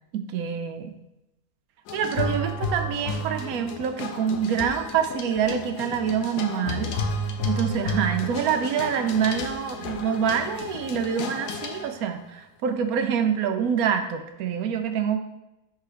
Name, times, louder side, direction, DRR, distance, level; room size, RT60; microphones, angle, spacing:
voice 1, 0.1-0.9 1.9-6.9 7.5-15.2, right 7 dB, 70° right, 7 dB, 1.0 m, -26 dB
sound 1, 1.9-12.1, left 2 dB, 90° left, 1.3 m, -32 dB
5.8 x 3.8 x 4.9 m, 0.91 s
omnidirectional pair, 1.7 m